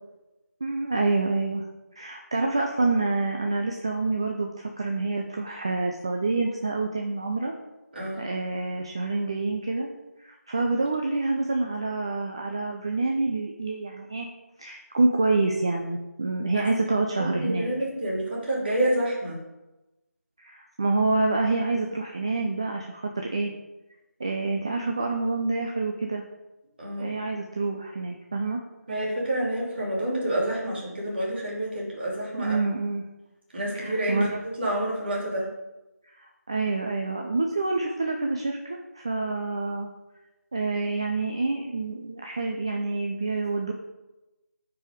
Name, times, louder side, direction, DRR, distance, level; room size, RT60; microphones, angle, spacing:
voice 1, 0.6-1.6 2.0-7.5 8.2-9.9 10.2-14.3 14.6-17.7 20.4-23.5 24.2-26.2 27.0-28.6 32.4-33.0 33.7-34.4 36.5-39.9 40.5-43.7, right 3 dB, 20° right, 2 dB, 0.4 m, -27 dB
voice 2, 17.1-19.4 26.8-27.1 28.9-32.6 33.5-35.5, right 1 dB, 40° right, -3 dB, 2.9 m, -28 dB
9.6 x 4.8 x 5.1 m, 1.0 s
figure-of-eight pair, 165°, 9 cm